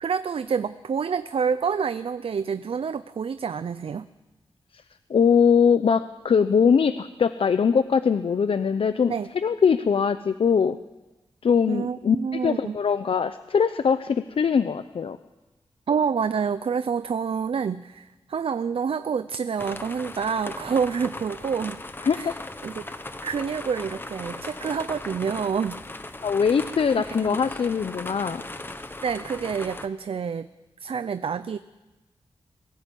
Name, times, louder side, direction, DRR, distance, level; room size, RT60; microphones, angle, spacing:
voice 1, 0.0-4.1 9.1-9.3 11.7-12.8 15.9-21.8 22.1-22.4 22.6-22.9 23.2-25.8 27.0-27.4 29.0-30.5 30.8-31.6, right 6 dB, 65° right, 12 dB, 0.6 m, -28 dB
voice 2, 5.1-10.8 11.4-15.2 22.0-22.3 26.2-28.4, left 6 dB, 65° left, 12 dB, 0.6 m, -22 dB
sound 1, 19.6-29.9, left 2 dB, 20° left, 1.2 m, -38 dB
22.5 x 15.5 x 8.4 m, 1.1 s
wide cardioid pair, 105°, 10 cm